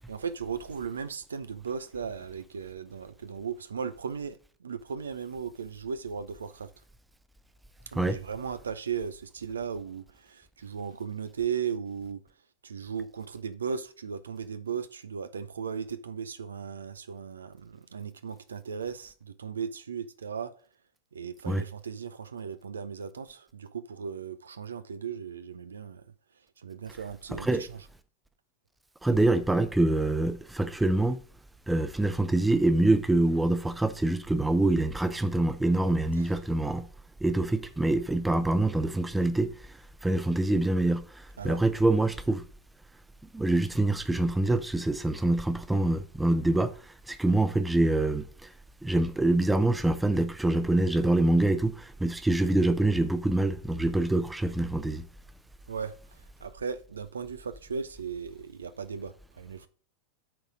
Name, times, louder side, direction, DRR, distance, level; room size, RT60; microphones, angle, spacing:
voice 1, 0.1-6.7 7.9-12.2 12.6-20.5 21.1-26.0 26.6-27.8 36.2-36.3 41.4-41.6 55.7-59.7, right 6 dB, 70° right, 0.4 m, -36 dB
voice 2, 27.3-27.7 29.0-31.2 31.7-36.9 37.2-39.7 40.0-42.4 43.3-48.5 48.8-55.1, right 2 dB, 5° right, 0.6 m, -25 dB
8.7 x 4.0 x 4.8 m
figure-of-eight pair, 90°, 0 cm